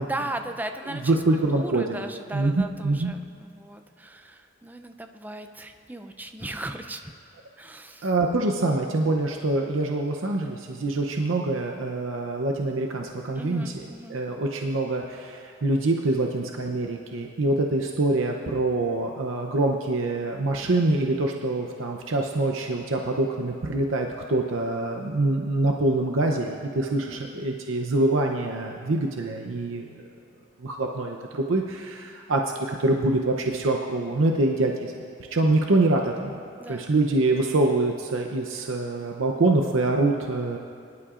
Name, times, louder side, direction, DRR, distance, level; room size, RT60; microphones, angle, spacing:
voice 1, 0.1-1.1 1.5-7.1 7.6-8.1 13.4-14.2 26.9-27.3 36.6-36.9, right 2 dB, 10° right, 6 dB, 0.5 m, -37 dB
voice 2, 0.9-2.0 2.3-3.1 8.0-30.0 30.6-34.9 35.3-36.4 36.7-40.6, right 2 dB, 85° right, 2 dB, 0.7 m, -25 dB
22.5 x 11.5 x 2.5 m, 2.4 s
head